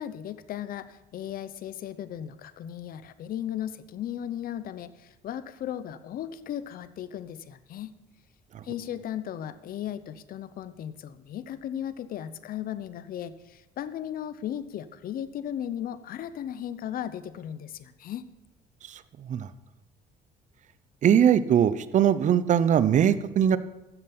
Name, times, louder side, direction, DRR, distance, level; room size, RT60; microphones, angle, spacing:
voice 1, 0.0-8.0 8.6-18.3, left 10 dB, 60° left, 14 dB, 0.8 m, -36 dB
voice 2, 18.9-19.5 21.0-23.6, right 9 dB, 45° right, 15 dB, 0.6 m, -21 dB
12.5 x 7.5 x 6.0 m, 1.0 s
cardioid pair, 110°, 17 cm